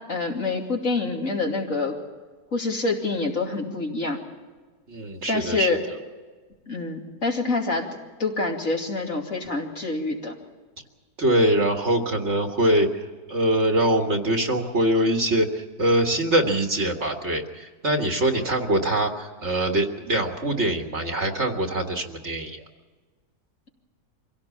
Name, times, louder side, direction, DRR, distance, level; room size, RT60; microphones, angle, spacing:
voice 1, 0.0-1.9 2.5-4.2 5.3-5.8 6.7-7.9 8.2-10.3, left 3 dB, 50° left, 0 dB, 3.0 m, -26 dB
voice 2, 4.9-5.8 11.2-22.6, right 1 dB, 45° right, 4 dB, 2.0 m, -23 dB
24.5 x 17.0 x 7.2 m, 1.4 s
omnidirectional pair, 1.7 m